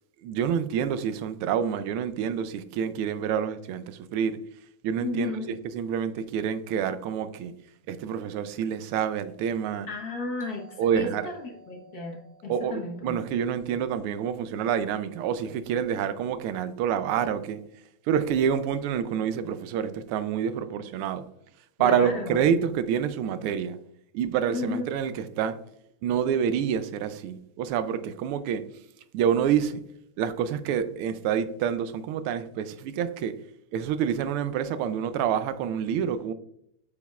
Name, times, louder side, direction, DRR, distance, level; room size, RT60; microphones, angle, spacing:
voice 1, 0.2-4.4 4.8-7.5 7.9-9.9 10.8-11.3 12.5-17.6 18.1-21.2 21.8-23.8 24.1-25.6 26.0-28.6 29.1-29.8 30.2-33.3 33.7-36.3, right 8 dB, 85° right, 1.5 m, -27 dB
voice 2, 5.0-5.5 9.9-13.2 21.8-22.5 24.5-24.9, left 3 dB, 50° left, 1.5 m, -34 dB
Doorbell, 10.4-15.0, right 2 dB, 10° right, 1.2 m, -56 dB
8.3 x 5.2 x 2.3 m
omnidirectional pair, 2.4 m